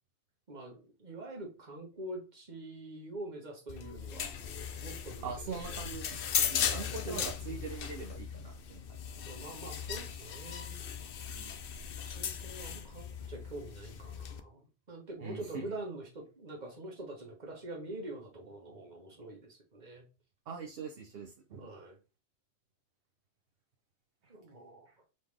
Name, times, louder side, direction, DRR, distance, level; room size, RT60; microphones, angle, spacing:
voice 1, 0.5-4.3 4.8-5.3 5.7-5.8 7.0-7.8 9.3-10.8 12.0-20.0 21.6-22.0 24.3-24.9, right 2 dB, 40° right, 0 dB, 1.4 m, -45 dB
sound 1, 3.7-14.4, left 8 dB, 60° left, 0.7 m, -37 dB
voice 2, 5.2-9.0 11.3-11.5 12.6-12.8 15.2-15.8 20.5-21.7 24.2-24.3 24.9-25.0, right 5 dB, 60° right, 2 dB, 0.9 m, -43 dB
4.1 x 3.6 x 3.3 m, 0.30 s
omnidirectional pair, 1.2 m